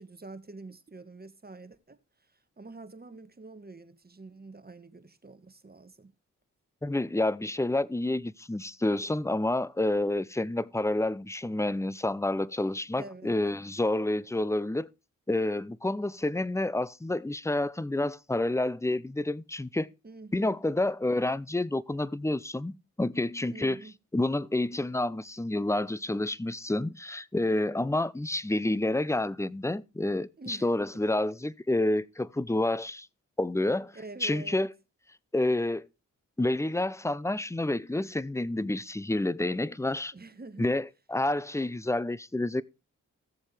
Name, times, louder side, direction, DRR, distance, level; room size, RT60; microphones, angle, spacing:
voice 1, 0.0-6.1 13.0-13.4 20.0-20.6 23.5-23.9 30.4-31.0 33.9-34.6 40.1-40.7, right 3 dB, 30° right, 1.5 m, -47 dB
voice 2, 6.8-14.9 15.3-19.9 20.3-23.8 24.1-33.1 33.4-33.9 34.2-34.7 35.3-35.8 36.4-40.1 40.6-42.6, left 2 dB, 10° left, 0.6 m, -29 dB
16.0 x 7.2 x 3.3 m
supercardioid pair, 45°, 33 cm